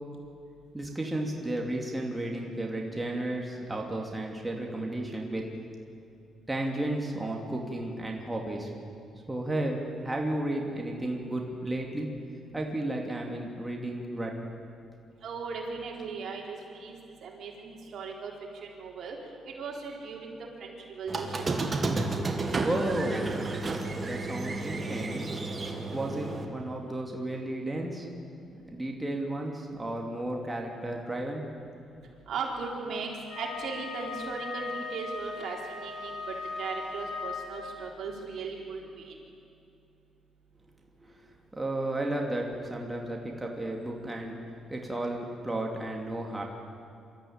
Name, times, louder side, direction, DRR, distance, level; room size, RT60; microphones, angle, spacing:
voice 1, 0.7-5.5 6.5-8.7 9.3-12.1 12.5-14.3 22.6-23.4 23.9-25.3 25.9-28.1 28.5-31.6 41.0-41.1 41.5-44.4 44.7-46.4, right 1 dB, 10° right, 0 dB, 2.8 m, -33 dB
voice 2, 15.2-18.3 18.6-19.2 19.6-21.4 32.3-39.2, right 4 dB, 65° right, -1 dB, 4.1 m, -38 dB
Squeak, 21.1-26.4, right 3 dB, 30° right, 2.2 m, -32 dB
Wind instrument woodwind instrument, 33.3-37.9, left 4 dB, 90° left, 6.9 m, -38 dB
25.5 x 13.5 x 8.9 m, 2.5 s
cardioid pair, 90°, 0 cm